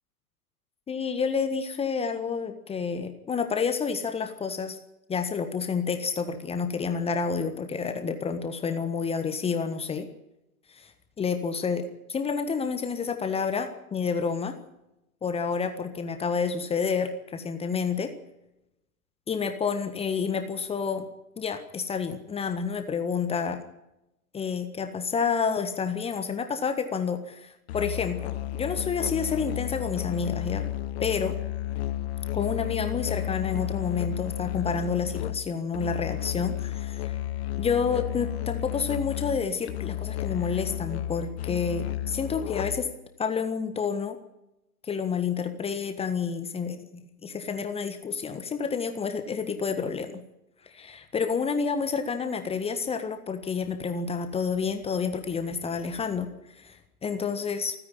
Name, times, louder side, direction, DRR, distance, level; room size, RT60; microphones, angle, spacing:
voice 1, 0.9-4.8 5.1-10.1 10.7-10.9 11.2-14.5 15.2-18.1 19.3-21.0 21.4-23.6 24.3-30.6 31.0-31.3 32.3-37.2 37.6-42.9 43.2-44.2 44.8-50.2 50.7-57.7, left 5 dB, 15° left, 7 dB, 1.5 m, -29 dB
Musical instrument, 27.7-43.0, left 13 dB, 45° left, 1.2 m, -32 dB
28.0 x 10.0 x 9.9 m, 0.89 s
figure-of-eight pair, 105°, 45 cm